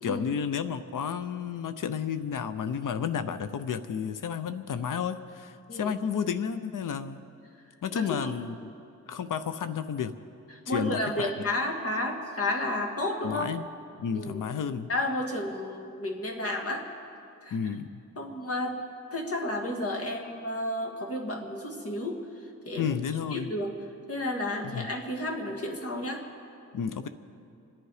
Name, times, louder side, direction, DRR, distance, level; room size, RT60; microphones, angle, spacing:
voice 1, 0.0-7.2 7.8-8.7 9.1-10.1 10.7-11.3 13.2-13.6 14.0-14.9 17.5-18.0 22.8-23.5 24.7-24.9 26.7-27.1, left 7 dB, 75° left, 11 dB, 0.6 m, -31 dB
voice 2, 7.9-8.3 10.7-13.5 14.1-14.4 14.9-16.8 17.4-17.6 18.2-18.7 19.1-22.2 22.7-22.9 23.3-23.7 24.1-26.2, left 1 dB, 45° left, 2 dB, 2.0 m, -31 dB
27.5 x 11.0 x 4.9 m, 2.6 s
wide cardioid pair, 140°, 32 cm